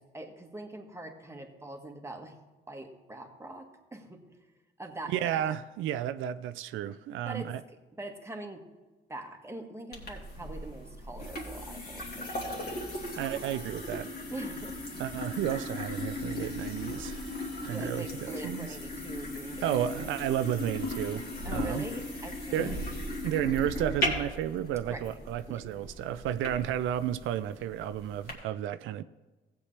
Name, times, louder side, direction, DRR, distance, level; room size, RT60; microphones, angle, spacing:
voice 1, 0.0-2.4 2.7-4.4 4.8-5.6 7.3-7.6 7.9-8.7 9.1-12.9 14.3-14.8 17.6-19.8 21.4-22.9 24.9-25.2 25.5-25.6, right 1 dB, 15° right, 1.4 m, -43 dB
voice 2, 5.1-7.6 13.2-14.1 15.0-17.3 17.6-18.8 19.6-21.9 22.5-22.9 23.2-29.0, right 11 dB, 85° right, 0.4 m, -32 dB
sound 1, 9.9-28.3, left 1 dB, 50° left, 2.4 m, -37 dB
15.5 x 8.2 x 3.3 m
cardioid pair, 90°, 20 cm